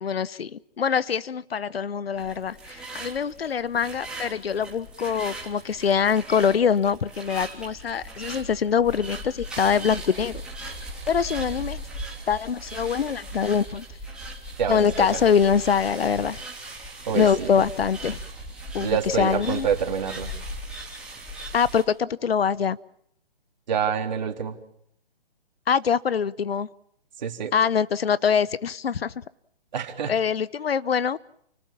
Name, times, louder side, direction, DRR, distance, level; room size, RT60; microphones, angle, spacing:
voice 1, 0.0-10.4 11.1-11.8 12.3-13.8 14.7-16.4 17.1-18.2 18.7-18.9 19.2-19.7 21.5-22.8 25.7-26.7 27.5-29.1 30.1-31.2, left 7 dB, 80° left, 18 dB, 0.9 m, -24 dB
sound 1, 2.2-21.8, right 1 dB, 5° right, 3.3 m, -38 dB
voice 2, 14.6-15.1 17.1-17.5 18.8-20.3 23.7-24.6 27.2-27.5 29.7-30.1, right 7 dB, 45° right, 3 dB, 3.7 m, -27 dB
29.5 x 19.5 x 7.4 m, 0.72 s
hypercardioid pair, 160°, 29 cm